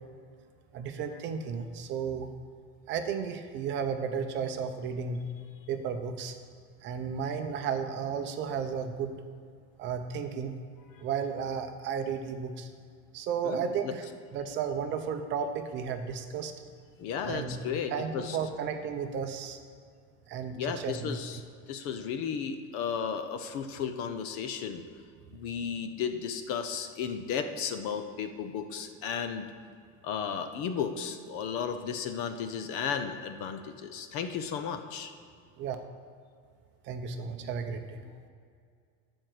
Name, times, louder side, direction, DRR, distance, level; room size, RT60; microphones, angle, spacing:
voice 1, 0.7-2.3 2.9-5.2 5.7-6.3 6.8-9.1 9.8-10.5 11.0-12.7 13.1-14.1 14.3-16.5 17.2-17.6 17.9-19.6 20.3-21.2 35.6-35.8 36.8-38.2, right 6 dB, 30° right, 6 dB, 0.7 m, -33 dB
voice 2, 13.4-13.9 17.0-18.4 20.5-21.4 21.7-24.8 25.3-29.5 30.0-35.1, left 7 dB, 40° left, 8 dB, 0.7 m, -34 dB
13.0 x 4.5 x 7.7 m, 2.2 s
supercardioid pair, 165°, 35 cm